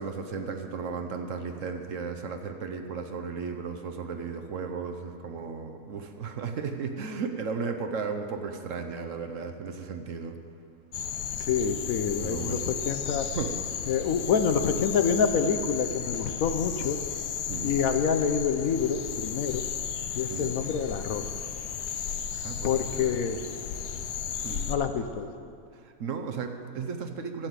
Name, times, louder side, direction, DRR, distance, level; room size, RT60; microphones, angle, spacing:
voice 1, 0.0-10.4 12.1-12.7 13.3-13.5 17.5-17.7 20.3-20.5 22.4-23.2 24.4-24.7 25.7-27.5, right 5 dB, 60° right, 5 dB, 1.1 m, -35 dB
sound 1, 10.9-24.8, left 8 dB, 85° left, 1.3 m, -34 dB
voice 2, 11.4-13.3 13.9-17.0 17.6-19.6 20.1-21.2 22.6-23.4 24.7-25.3, left 6 dB, 70° left, 8 dB, 1.1 m, -27 dB
12.0 x 7.7 x 8.1 m, 2.3 s
omnidirectional pair, 1.6 m